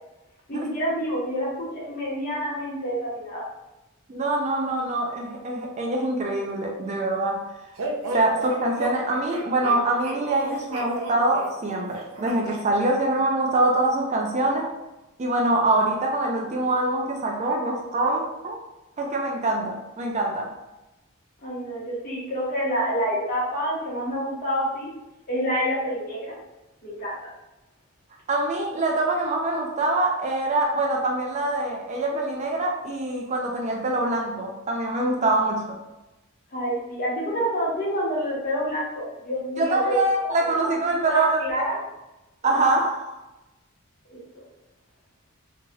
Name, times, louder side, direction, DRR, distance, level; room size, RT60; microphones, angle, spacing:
voice 1, 0.5-3.4 21.4-24.9 25.3-26.4 26.8-27.3 36.5-40.0 40.6-40.7 41.0-41.8 44.1-44.4, equal, 40° left, -6 dB, 1.0 m, -28 dB
voice 2, 4.1-7.5 8.1-14.7 15.2-18.6 19.0-20.5 28.3-35.8 39.6-41.7 42.4-43.1, right 2 dB, 30° right, 1 dB, 0.3 m, -24 dB
sound 1, 7.8-12.6, right 2 dB, 80° right, 0.5 m, -33 dB
3.1 x 2.7 x 2.3 m, 1.0 s
head